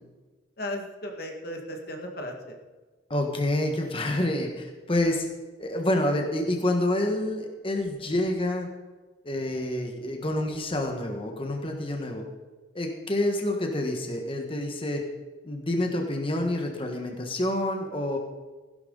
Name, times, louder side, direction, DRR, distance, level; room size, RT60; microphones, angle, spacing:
voice 1, 0.6-2.6, left 1 dB, 55° left, 2 dB, 1.9 m, -36 dB
voice 2, 3.1-5.3 5.6-8.7 9.2-12.2 12.7-15.0 15.4-18.2, left 1 dB, 30° left, 3 dB, 1.5 m, -28 dB
16.0 x 11.5 x 4.0 m, 1.3 s
head